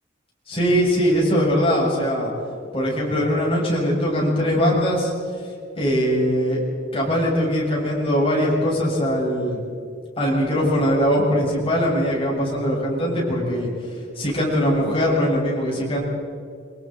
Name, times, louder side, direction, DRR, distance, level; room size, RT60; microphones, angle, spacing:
voice 1, 0.5-2.3 2.7-5.1 5.8-6.6 6.9-9.6 10.2-16.0, equal, 30° left, -4 dB, 7.3 m, -21 dB
27.5 x 25.5 x 4.7 m, 2.4 s
head